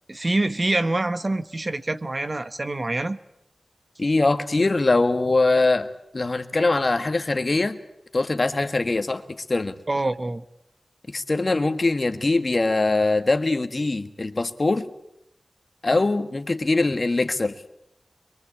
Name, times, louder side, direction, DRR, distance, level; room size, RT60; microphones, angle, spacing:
voice 1, 0.1-3.2 9.9-10.4, right 2 dB, 40° right, 11 dB, 1.2 m, -25 dB
voice 2, 4.0-5.9 6.1-7.8 8.1-9.2 9.5-9.8 11.1-14.9 15.8-17.5, left 2 dB, 50° left, 9 dB, 1.6 m, -22 dB
23.5 x 23.0 x 8.5 m, 0.80 s
wide cardioid pair, 55°, 0 cm